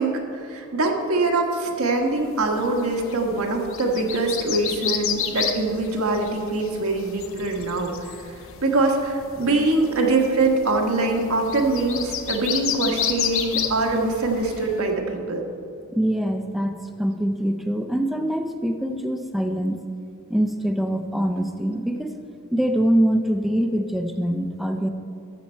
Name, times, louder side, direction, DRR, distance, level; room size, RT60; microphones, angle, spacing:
voice 1, 0.0-7.9 8.6-15.4, right 2 dB, 90° right, 1 dB, 1.3 m, -23 dB
sound 1, 2.3-14.8, left 8 dB, 65° left, 0.7 m, -32 dB
voice 2, 15.9-19.8 20.3-22.1 22.5-24.9, equal, ahead, 5 dB, 0.4 m, -24 dB
12.5 x 7.3 x 4.4 m, 2.5 s
head